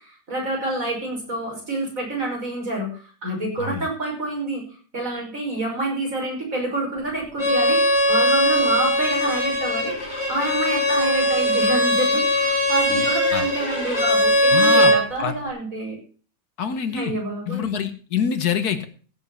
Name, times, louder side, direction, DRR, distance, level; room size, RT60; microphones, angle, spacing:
voice 1, 0.0-4.6 4.9-16.0 17.0-17.7, right 2 dB, 60° right, -1 dB, 6.3 m, -27 dB
Bowed string instrument, 7.4-15.0, equal, 50° left, 3.4 m, -20 dB
voice 2, 14.5-14.9 15.2-15.3 16.6-17.1 17.5-18.9, left 7 dB, 85° left, 10 dB, 1.8 m, -25 dB
16.0 x 7.5 x 5.7 m, 0.40 s
omnidirectional pair, 1.6 m